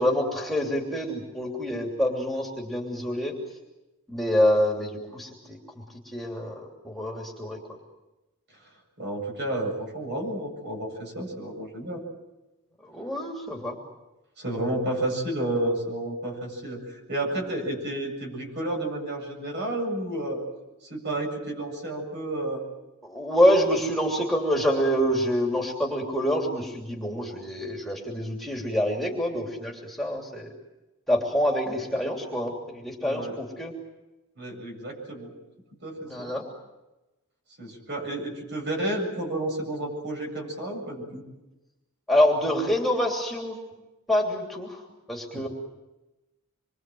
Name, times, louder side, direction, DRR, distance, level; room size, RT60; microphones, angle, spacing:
voice 1, 0.0-3.3 4.1-5.6 6.0-7.6 12.8-13.7 23.0-30.5 31.1-33.7 36.1-36.4 42.1-43.6 44.1-44.8 45.1-45.5, equal, ahead, -1 dB, 3.0 m, -26 dB
voice 2, 9.0-12.0 14.4-20.4 20.8-22.7 33.0-33.4 34.4-35.3 35.8-36.3 37.6-41.2, right 1 dB, 50° right, 2 dB, 7.8 m, -31 dB
26.5 x 23.5 x 7.7 m, 1.0 s
head